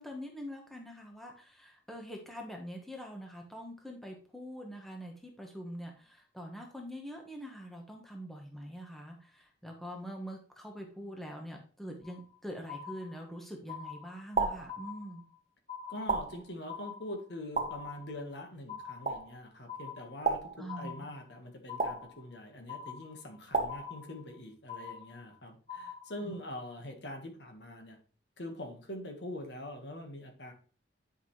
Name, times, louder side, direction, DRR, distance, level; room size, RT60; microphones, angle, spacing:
voice 1, 0.0-15.2 20.6-21.1 26.2-26.3, equal, ahead, 1 dB, 1.1 m, -44 dB
sound 1, 12.0-12.4 12.7-13.4 13.7-14.4 14.7-15.4 15.7-16.4 16.7-17.4 17.7-18.4 18.7-19.4 19.7-20.4 20.7-21.4 21.7-22.4 22.7-23.4 23.7-24.4 24.7-25.4 25.7-26.4, left 7 dB, 35° left, 2.7 m, -45 dB
sound 2, 14.4-14.8 16.1-16.5 17.6-17.9 19.1-19.4 20.3-20.7 21.8-22.2 23.5-23.9, right 4 dB, 35° right, 1.1 m, -32 dB
voice 2, 15.9-28.0 28.4-30.5, left 1 dB, 65° left, 4 dB, 1.5 m, -44 dB
10.0 x 5.5 x 3.2 m, 0.40 s
head